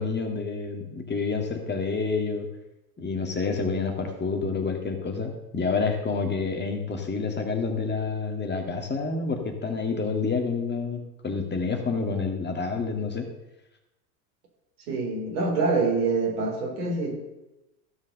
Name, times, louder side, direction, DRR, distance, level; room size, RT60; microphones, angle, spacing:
voice 1, 0.0-2.5 3.0-13.3, left 4 dB, 20° left, 3 dB, 1.9 m, -28 dB
voice 2, 14.9-17.2, right 3 dB, 65° right, 1 dB, 3.7 m, -25 dB
15.0 x 5.2 x 6.6 m, 0.96 s
hypercardioid pair, 85°, 47 cm